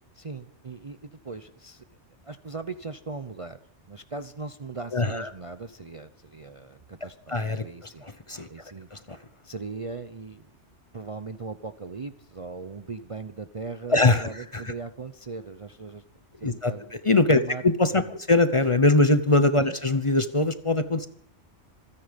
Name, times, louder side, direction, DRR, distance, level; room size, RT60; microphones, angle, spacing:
voice 1, 0.1-1.8 2.2-3.6 3.9-7.4 7.6-8.1 8.5-8.9 9.4-10.5 10.9-16.0 16.4-16.9 17.3-17.6 17.9-18.1 19.6-19.8, right 4 dB, 35° right, 10 dB, 0.6 m, -39 dB
voice 2, 4.9-5.3 7.3-8.5 8.9-9.2 13.9-14.7 16.4-21.1, left 2 dB, 30° left, 12 dB, 0.9 m, -22 dB
27.0 x 10.0 x 5.2 m, 0.64 s
omnidirectional pair, 1.2 m